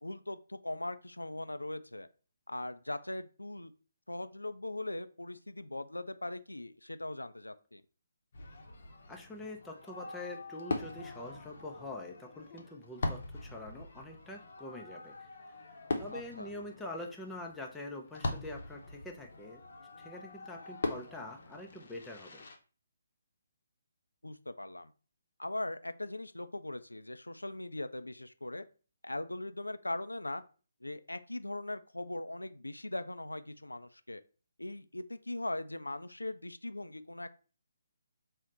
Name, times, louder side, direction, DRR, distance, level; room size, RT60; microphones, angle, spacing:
voice 1, 0.0-2.1 2.5-3.7 4.1-7.8 16.1-16.5 24.2-24.9 25.4-28.6 29.0-30.4 30.8-34.2 34.6-37.3, left 1 dB, 80° left, 11 dB, 0.3 m, -40 dB
Fireworks, 8.3-22.6, left 2 dB, 50° left, 0.7 m, -42 dB
voice 2, 9.1-15.3 16.0-19.6 20.0-22.4, left 2 dB, 5° left, 0 dB, 0.4 m, -45 dB
4.0 x 2.1 x 3.7 m, 0.36 s
figure-of-eight pair, 140°, 0 cm